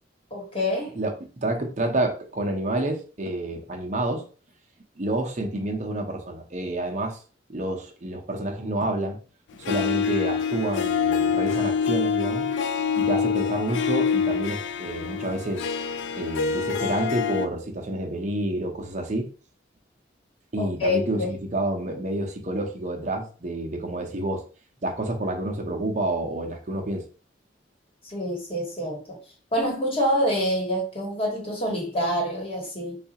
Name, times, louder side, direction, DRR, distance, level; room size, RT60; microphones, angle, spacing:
voice 1, 0.3-1.0 20.6-21.3 28.0-29.2 29.5-33.0, equal, 30° left, 1.3 m, -26 dB
voice 2, 1.4-4.2 5.0-7.2 7.5-9.2 9.6-12.5 12.9-15.6 16.1-19.3 20.5-24.4 24.8-27.0, right 1 dB, 40° right, 0.7 m, -28 dB
Harp, 9.6-17.5, left 6 dB, 80° left, 0.3 m, -26 dB
4.1 x 2.4 x 2.8 m
head